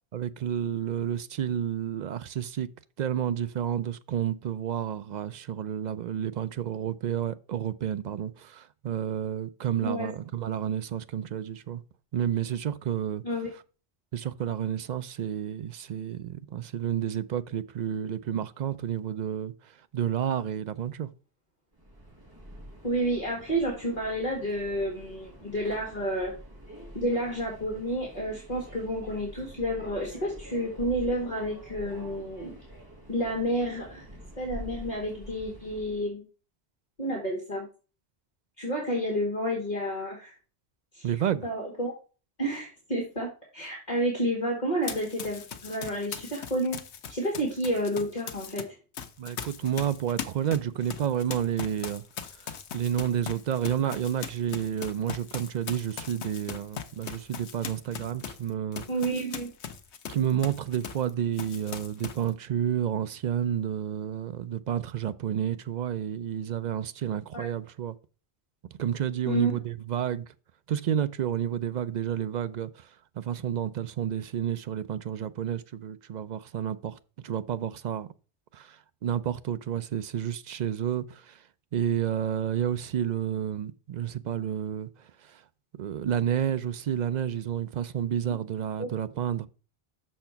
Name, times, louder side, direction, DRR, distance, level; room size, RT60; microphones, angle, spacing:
voice 1, 0.1-2.7 3.0-11.8 12.1-13.2 14.1-21.1 41.0-41.5 49.2-52.0 52.3-58.8 60.1-68.0 68.8-70.3 70.7-77.0 77.2-78.1 78.5-81.4 81.7-85.4 85.8-89.5, right 9 dB, 55° right, 0.5 m, -30 dB
Subway metro underground, 21.7-36.1, equal, 20° right, 1.8 m, -46 dB
voice 2, 22.8-26.3 26.9-32.6 33.1-34.1 34.4-36.2 37.0-37.7 38.6-40.3 40.9-41.1 41.4-41.9 42.4-46.8 47.1-48.6 58.9-59.5 67.3-67.5 69.3-69.5 88.8-88.9, equal, 40° left, 1.9 m, -30 dB
Run, 44.8-48.6 48.9-61.1 61.4-62.3, left 8 dB, 90° left, 1.1 m, -40 dB
6.6 x 4.4 x 5.7 m
omnidirectional pair, 1.1 m